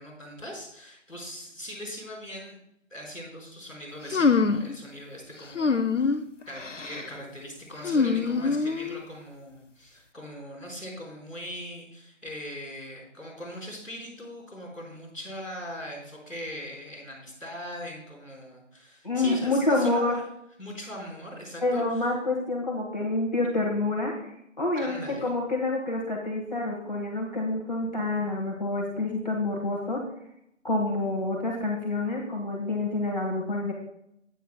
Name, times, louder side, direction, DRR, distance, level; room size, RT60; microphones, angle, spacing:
voice 1, 0.0-2.6 2.9-6.2 6.4-20.2 20.6-22.1 24.7-25.3, equal, ahead, -22 dB, 2.5 m, -40 dB
sound 1, 4.1-4.7 5.5-6.2 6.6-7.0 7.8-9.0, left 4 dB, 70° left, 0.8 m, -24 dB
voice 2, 19.0-20.1 21.6-24.3 24.6-30.0 30.6-33.7, left 2 dB, 35° left, -2 dB, 1.7 m, -27 dB
14.0 x 9.2 x 2.3 m, 0.77 s
figure-of-eight pair, 165°, 38 cm